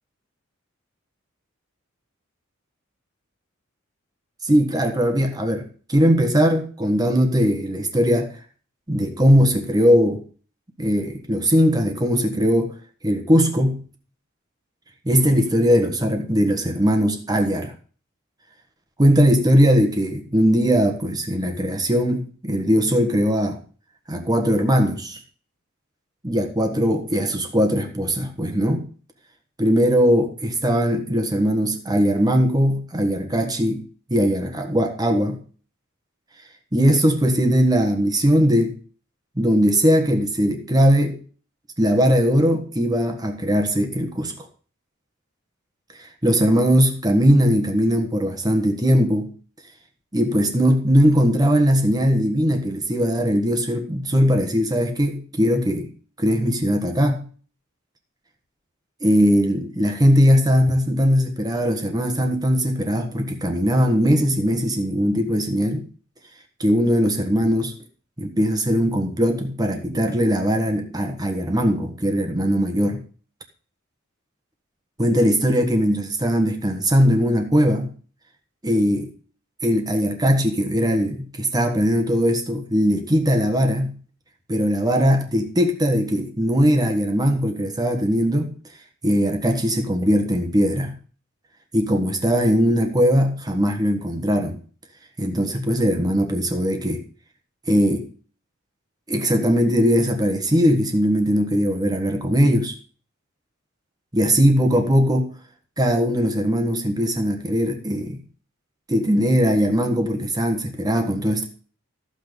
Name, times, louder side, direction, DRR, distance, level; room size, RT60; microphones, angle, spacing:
voice 1, 4.4-8.3 8.9-10.2 10.8-12.7 13.0-13.8 15.0-17.7 19.0-23.6 24.1-25.2 26.2-28.9 29.6-33.8 34.1-35.4 36.7-38.8 39.4-41.2 41.8-44.3 46.0-49.3 50.1-55.9 56.2-57.3 59.0-65.8 66.6-67.7 68.2-73.0 75.0-77.9 78.6-79.1 79.6-84.0 84.5-88.5 89.0-90.9 91.7-94.6 95.2-97.0 97.7-98.1 99.1-102.7 104.1-105.3 105.8-108.2 108.9-111.4, equal, 20° right, 4 dB, 1.4 m, -20 dB
14.5 x 6.1 x 5.2 m, 0.40 s
head